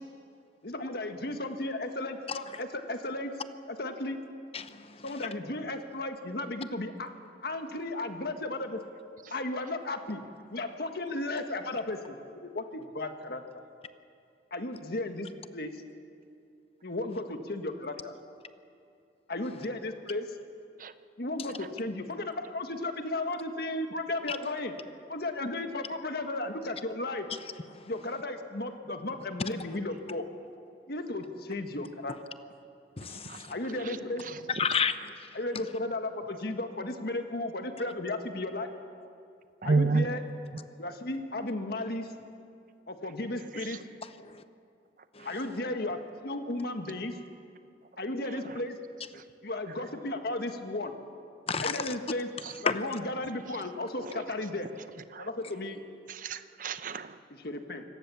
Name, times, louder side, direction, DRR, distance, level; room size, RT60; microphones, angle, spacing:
voice 1, 0.6-3.3 3.7-4.2 5.0-7.1 7.4-8.8 9.3-10.2 10.5-13.6 14.5-15.3 15.5-15.8 16.8-18.1 19.3-20.3 21.2-24.7 25.1-27.3 27.9-30.3 30.9-32.1 33.5-34.2 35.3-38.7 39.6-40.2 40.8-42.1 42.9-43.8 45.2-47.1 48.0-48.8 49.4-50.9 51.6-52.3 52.6-54.7 55.2-55.8 57.3-57.8, left 2 dB, 60° left, 6 dB, 1.6 m, -34 dB
voice 2, 2.3-2.6 4.5-5.3 24.3-24.4 27.3-27.4 27.7-27.9 33.0-33.6 34.5-35.6 44.0-44.4 45.1-45.6 51.5-51.9 52.7-53.0, left 6 dB, 35° left, 11 dB, 0.8 m, -33 dB
voice 3, 33.0-33.4 33.9-34.0 39.6-40.1 43.7-43.8 52.4-52.5 55.1-55.3 56.1-57.2, right 3 dB, 50° right, 11 dB, 0.8 m, -29 dB
25.0 x 18.0 x 7.1 m, 2.6 s
head